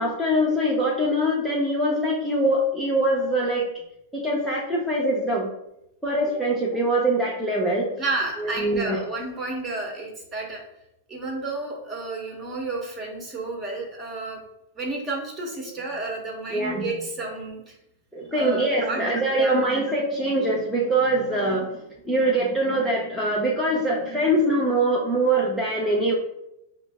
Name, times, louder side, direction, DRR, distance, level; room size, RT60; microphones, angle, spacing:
voice 1, 0.0-3.7 4.1-5.5 6.0-7.9 8.4-9.0 16.5-16.9 18.1-21.7 22.0-26.2, right 1 dB, ahead, -5 dB, 0.7 m, -23 dB
voice 2, 8.0-10.6 11.1-14.4 14.8-17.7 18.3-19.0 19.3-19.6, right 2 dB, 25° right, 0 dB, 1.2 m, -31 dB
5.0 x 2.0 x 3.5 m, 0.84 s
hypercardioid pair, 110°, 0 cm